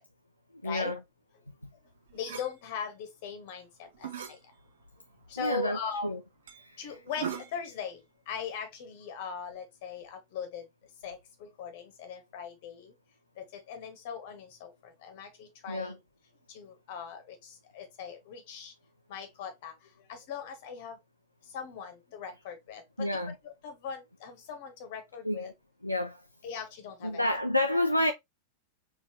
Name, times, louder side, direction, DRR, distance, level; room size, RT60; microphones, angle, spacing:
voice 1, 0.6-1.0 5.4-6.2 6.6-7.0 15.7-16.0 23.0-23.4 25.2-25.5 25.8-26.2 27.0-28.1, left 1 dB, 90° left, 0.4 m, -29 dB
voice 2, 2.1-3.7 5.3-6.2 6.8-8.0 8.3-10.6 11.0-12.9 13.5-14.7 15.0-16.0 16.5-17.2 17.7-18.7 19.1-19.7 20.1-21.0 21.5-23.1 23.4-25.5 26.4-27.2, left 6 dB, 50° left, 1.2 m, -39 dB
sound 1, 2.1-2.5 3.8-4.4 4.9-5.0 5.4-5.5 5.9-6.0 6.5-6.6 7.0-7.7, right 8 dB, 60° right, 0.7 m, -39 dB
4.0 x 2.8 x 3.1 m
figure-of-eight pair, 90°, 0 cm